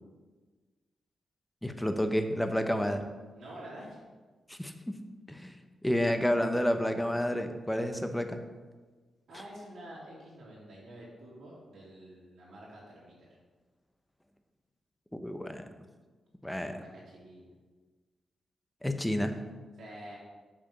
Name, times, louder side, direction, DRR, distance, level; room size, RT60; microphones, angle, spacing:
voice 1, 1.6-3.0 4.5-5.0 5.3-5.6 5.8-8.4 15.2-15.6 16.4-16.8 18.8-19.3, equal, 10° left, 7 dB, 0.9 m, -30 dB
voice 2, 3.3-4.0 9.3-13.4 16.4-17.5 19.8-20.2, right 1 dB, 85° right, -8 dB, 2.8 m, -48 dB
7.2 x 5.0 x 6.7 m, 1.3 s
cardioid pair, 65°, 0 cm